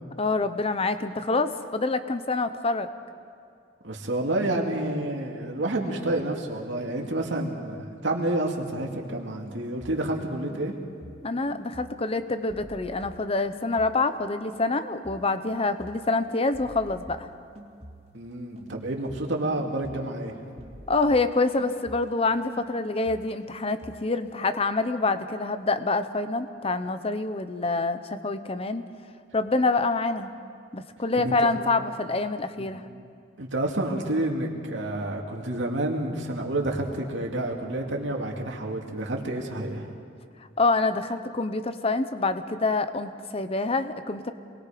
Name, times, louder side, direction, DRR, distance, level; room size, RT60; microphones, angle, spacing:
voice 1, 0.2-2.9 11.2-17.3 20.9-28.8 29.3-30.3 30.7-32.8 40.6-44.3, left 3 dB, 30° left, 10 dB, 0.8 m, -26 dB
voice 2, 3.8-7.8 8.0-10.7 18.1-20.3 31.2-31.4 32.6-32.7 33.4-39.9, right 1 dB, 75° right, 0 dB, 2.4 m, -29 dB
sound 1, 9.4-10.2 10.5-14.2 14.5-22.3 22.6-24.6, right 1 dB, 35° right, 2.5 m, -48 dB
27.5 x 21.0 x 5.1 m, 2.3 s
head